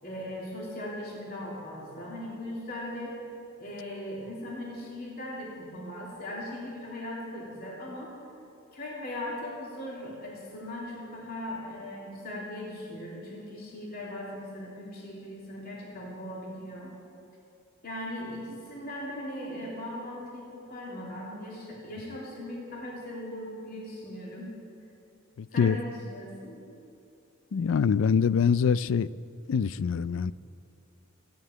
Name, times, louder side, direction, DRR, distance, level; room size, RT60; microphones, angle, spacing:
voice 1, 0.0-3.2 3.6-8.1 8.7-16.9 17.8-24.5 25.5-26.6, left 1 dB, 45° left, -5 dB, 3.1 m, -39 dB
voice 2, 25.4-25.8 27.5-29.1 29.5-30.3, left 6 dB, 65° left, 18 dB, 0.4 m, -24 dB
14.5 x 9.3 x 9.0 m, 2.7 s
head